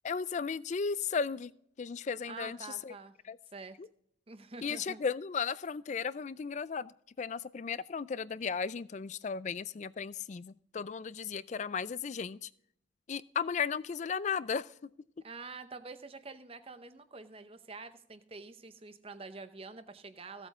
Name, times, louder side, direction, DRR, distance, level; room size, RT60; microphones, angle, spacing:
voice 1, 0.0-1.5 1.8-2.6 2.8-2.9 3.3-3.4 4.6-12.5 13.1-14.7, left 6 dB, 35° left, 19 dB, 0.3 m, -35 dB
voice 2, 2.2-3.1 3.5-3.8 4.3-5.0 15.2-20.5, right 4 dB, 30° right, 11 dB, 0.8 m, -47 dB
16.5 x 8.2 x 3.6 m, 0.69 s
head